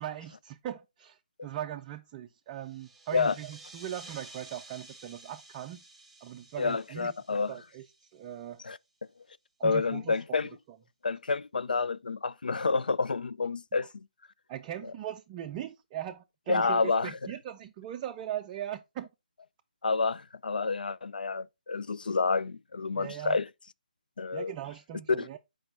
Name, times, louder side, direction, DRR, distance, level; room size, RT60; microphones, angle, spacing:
voice 1, 0.0-5.8 6.2-7.1 7.5-8.6 9.6-10.4 10.7-10.8 13.7-13.9 14.5-19.1 22.9-23.4 24.3-25.4, right 11 dB, 20° right, 0.4 m, -40 dB
sound 1, 2.6-8.7, right 2 dB, ahead, 0.9 m, -52 dB
voice 2, 6.6-7.5 8.6-8.8 9.6-10.5 11.0-14.1 16.5-17.2 19.8-23.5 24.2-24.5 25.2-25.3, left 4 dB, 80° left, 0.4 m, -29 dB
6.0 x 4.8 x 3.7 m
hypercardioid pair, 155°, 5 cm